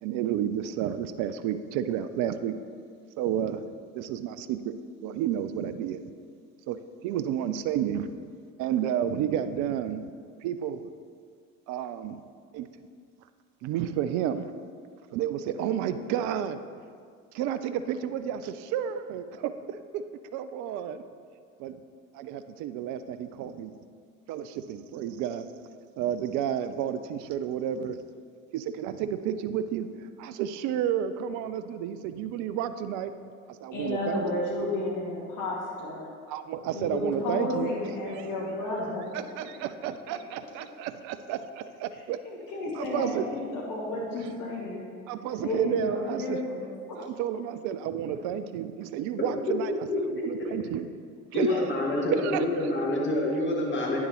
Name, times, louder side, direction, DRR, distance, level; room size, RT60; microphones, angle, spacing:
voice 1, 0.0-2.5 3.2-3.7 3.9-4.7 5.0-6.0 6.7-8.1 8.6-10.0 10.4-10.8 11.7-12.2 12.5-12.7 13.6-14.5 15.1-16.6 17.3-20.0 20.3-21.0 21.6-21.8 22.1-23.7 24.3-25.5 26.0-28.0 28.5-33.1 33.5-34.2 36.3-37.8 38.0-38.3 39.1-42.2 42.7-43.3 45.1-46.4 47.0-50.9 51.3-52.4, right 9 dB, 45° right, 11 dB, 0.5 m, -31 dB
voice 2, 33.7-36.1 36.7-39.0 42.3-44.8 45.4-46.7 51.5-51.6, left 2 dB, 45° left, -4 dB, 2.1 m, -32 dB
voice 3, 49.7-50.2 51.3-54.0, left 1 dB, 25° left, -3 dB, 2.1 m, -27 dB
9.4 x 7.2 x 3.1 m, 2.1 s
hypercardioid pair, 70°, 43 cm